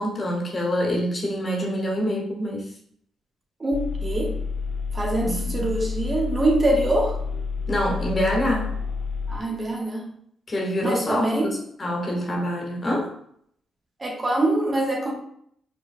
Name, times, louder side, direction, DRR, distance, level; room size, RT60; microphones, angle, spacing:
voice 1, 0.0-2.6 5.2-5.7 7.7-8.7 10.5-11.5 11.8-13.1, equal, 40° left, -1 dB, 1.5 m, -26 dB
voice 2, 3.6-4.3 4.9-7.2 9.3-10.1 10.8-11.5 14.0-15.1, right 1 dB, 35° right, 0 dB, 1.1 m, -24 dB
sound 1, 3.7-9.4, left 5 dB, 55° left, 0.7 m, -29 dB
5.4 x 4.3 x 2.2 m, 0.68 s
hypercardioid pair, 40°, 0 cm